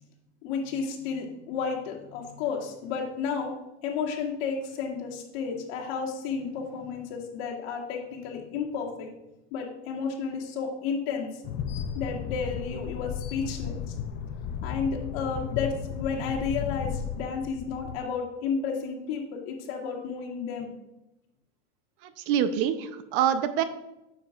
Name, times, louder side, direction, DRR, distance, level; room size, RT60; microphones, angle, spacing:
voice 1, 0.4-3.5 3.8-9.1 9.5-11.4 11.7-13.9 14.6-20.7, left 5 dB, 60° left, -2 dB, 2.1 m, -32 dB
sound 1, 11.4-18.0, left 7 dB, 30° left, 0.3 m, -34 dB
voice 2, 22.3-23.6, right 9 dB, 50° right, 11 dB, 0.7 m, -25 dB
9.4 x 7.1 x 2.4 m, 0.93 s
supercardioid pair, 140°, 35 cm